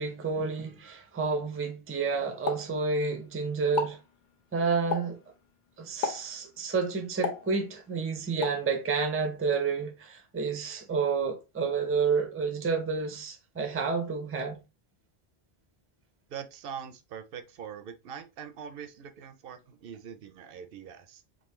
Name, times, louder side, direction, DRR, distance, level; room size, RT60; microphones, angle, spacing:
voice 1, 0.0-4.0 4.5-5.2 5.8-14.6, right 5 dB, 20° right, 0.4 m, -30 dB
Explosion, 2.5-3.3 3.6-4.1 4.9-5.3 6.0-6.4 7.2-7.9 8.4-8.7, left 5 dB, 55° left, 0.7 m, -34 dB
voice 2, 16.3-21.2, right 7 dB, 70° right, 0.7 m, -43 dB
3.6 x 2.5 x 3.0 m
omnidirectional pair, 1.0 m